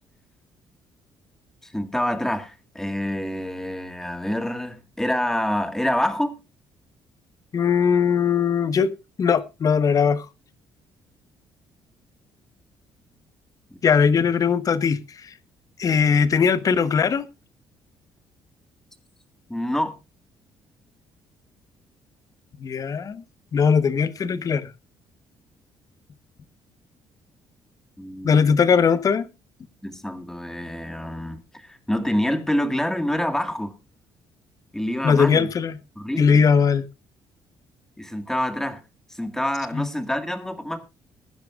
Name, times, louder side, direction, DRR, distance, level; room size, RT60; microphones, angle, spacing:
voice 1, 1.6-6.4 19.5-19.9 28.0-28.6 29.8-33.7 34.7-35.5 36.0-36.4 38.0-38.8 39.1-40.8, left 1 dB, 5° left, 1.7 m, -27 dB
voice 2, 7.5-8.9 9.2-10.3 13.8-15.3 15.8-17.3 22.6-23.2 23.5-24.7 28.2-29.3 35.0-35.8 36.2-36.8 39.7-39.9, left 6 dB, 40° left, 1.0 m, -20 dB
21.5 x 10.5 x 2.4 m
cardioid pair, 120°, 9 cm